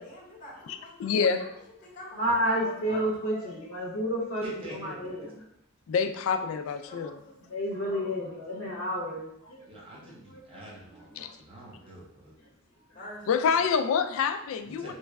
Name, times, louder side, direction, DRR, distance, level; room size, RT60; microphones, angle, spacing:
voice 1, 0.0-2.2 2.5-3.5 6.5-7.4 7.7-8.9 11.5-11.6 12.7-13.7, left 1 dB, 35° left, -4 dB, 0.9 m, -47 dB
voice 2, 1.0-1.5 5.9-7.1 11.2-11.3 13.3-14.9, left 6 dB, 70° left, 8 dB, 0.3 m, -26 dB
voice 3, 2.2-4.4 4.8-5.3 7.5-9.6 11.2-11.3, equal, 85° left, -3 dB, 0.7 m, -30 dB
voice 4, 4.4-5.2 9.6-11.1 11.4-12.3 14.6-14.9, right 1 dB, 25° right, -5 dB, 0.7 m, -44 dB
3.1 x 2.2 x 3.5 m, 0.77 s
head